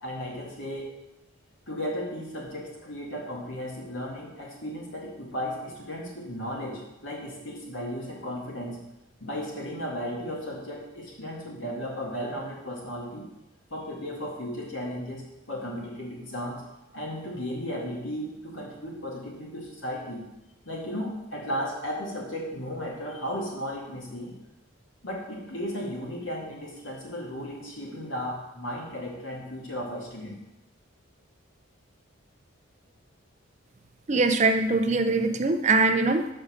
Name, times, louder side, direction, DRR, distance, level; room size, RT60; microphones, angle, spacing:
voice 1, 0.0-0.9 1.7-8.8 9.2-13.3 13.7-16.6 16.9-20.2 20.7-24.3 25.0-30.4, equal, 65° left, -2 dB, 2.1 m, -35 dB
voice 2, 34.1-36.3, right 3 dB, 35° right, 8 dB, 0.4 m, -22 dB
6.3 x 5.4 x 6.4 m, 0.94 s
head